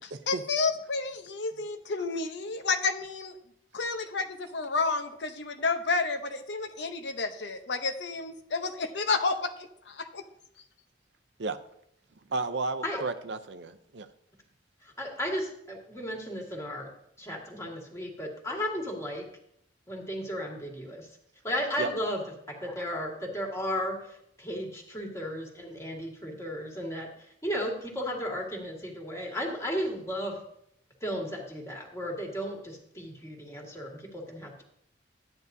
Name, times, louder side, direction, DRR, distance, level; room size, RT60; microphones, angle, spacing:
voice 1, 0.3-3.3 3.7-9.5 9.9-10.2, left 4 dB, 75° left, 7 dB, 0.8 m, -30 dB
voice 2, 12.3-14.1 21.8-21.9, right 3 dB, 75° right, 10 dB, 0.6 m, -32 dB
voice 3, 14.8-16.9 17.2-19.3 19.9-21.2 21.4-22.2 22.5-30.4 31.0-34.6, equal, 15° left, -1 dB, 1.9 m, -34 dB
11.5 x 9.5 x 2.7 m, 0.73 s
head